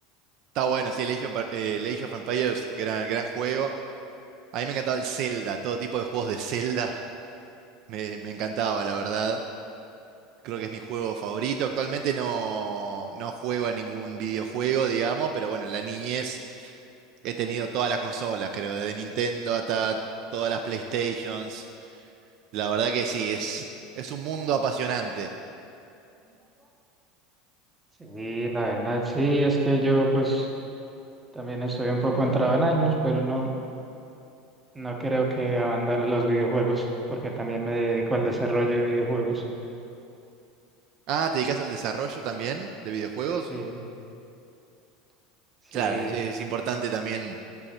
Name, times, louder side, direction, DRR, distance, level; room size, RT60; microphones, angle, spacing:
voice 1, 0.5-3.7 4.5-7.0 7.9-9.4 10.4-16.7 17.2-20.0 20.3-21.6 22.5-23.7 24.0-25.3 41.1-43.5 45.7-47.4, right 7 dB, 50° right, 5 dB, 0.3 m, -29 dB
voice 2, 28.0-30.5 31.3-33.5 34.7-39.4 43.5-43.8 45.7-46.2, right 2 dB, 10° right, 1 dB, 0.7 m, -25 dB
5.9 x 5.4 x 4.2 m, 2.6 s
supercardioid pair, 145°, 0 cm